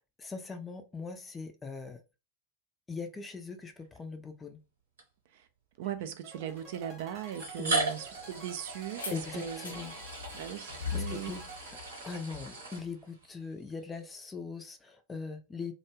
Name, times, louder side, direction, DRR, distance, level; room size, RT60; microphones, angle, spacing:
voice 1, 0.2-2.0 2.9-4.6 7.6-8.0 9.1-9.9 10.9-11.6 12.0-15.7, left 4 dB, 15° left, 0.4 m, -41 dB
sound 1, 3.8-4.0 5.0-5.1 6.2-6.3 7.3-13.3, right 2 dB, 70° right, 0.8 m, -37 dB
voice 2, 5.8-9.9 10.3-11.3, right 10 dB, 50° right, 0.3 m, -39 dB
sound 2, 6.2-12.5, right 3 dB, 25° right, 0.8 m, -51 dB
sound 3, 6.5-12.5, left 7 dB, 70° left, 0.6 m, -43 dB
2.3 x 2.2 x 3.0 m
figure-of-eight pair, 90°, 0 cm